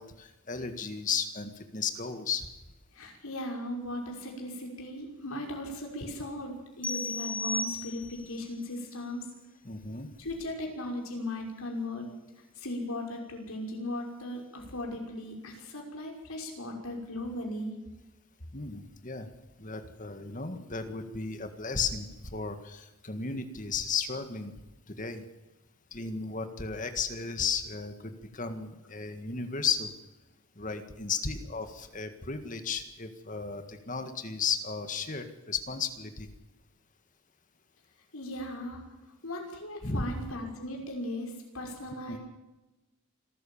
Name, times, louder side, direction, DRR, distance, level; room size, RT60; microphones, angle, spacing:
voice 1, 0.0-2.5 9.6-10.1 18.5-19.3 19.6-24.5 24.9-25.2 25.9-29.9 30.6-36.3 39.8-40.3 42.1-42.2, left 5 dB, 35° left, 8 dB, 1.8 m, -34 dB
voice 2, 2.9-9.2 10.2-12.1 12.5-17.7 38.1-38.8 39.2-42.2, left 1 dB, 75° left, 1 dB, 5.9 m, -37 dB
sound 1, 6.8-8.4, left 1 dB, 5° left, 1.7 m, -34 dB
27.0 x 14.0 x 7.3 m, 1.1 s
head